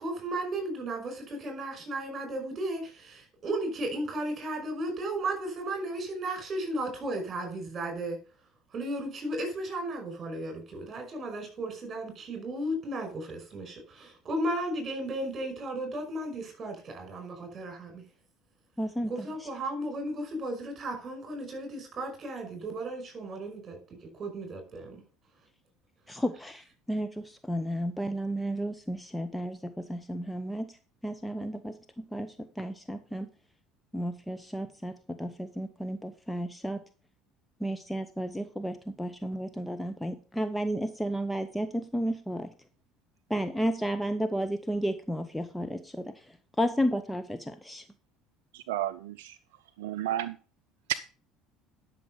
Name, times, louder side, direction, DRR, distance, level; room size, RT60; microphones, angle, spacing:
voice 1, 0.0-8.2 8.7-18.0 19.1-25.0, right 1 dB, 35° right, 5 dB, 5.5 m, -35 dB
voice 2, 18.8-19.5 26.1-30.7 31.0-33.3 33.9-36.8 37.6-42.5 43.3-46.3 46.6-47.8, equal, 5° left, 9 dB, 0.9 m, -33 dB
voice 3, 48.5-49.4 49.8-50.4 50.9-51.0, right 13 dB, 70° right, 16 dB, 0.4 m, -32 dB
11.5 x 6.4 x 5.3 m, 0.37 s
figure-of-eight pair, 65°, 0 cm